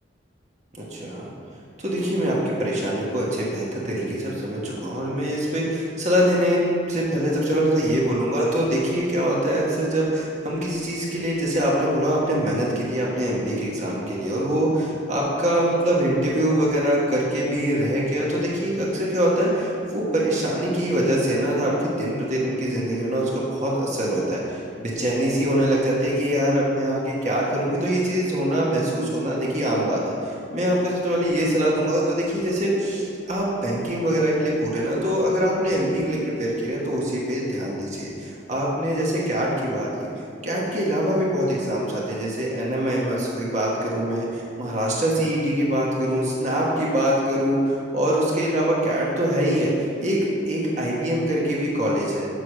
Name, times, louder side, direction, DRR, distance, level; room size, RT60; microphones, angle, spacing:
voice 1, 0.7-1.3 1.8-6.6 6.9-40.1 40.4-49.7 50.0-52.3, right 1 dB, 40° right, -5 dB, 1.4 m, -23 dB
6.9 x 4.9 x 6.4 m, 2.6 s
head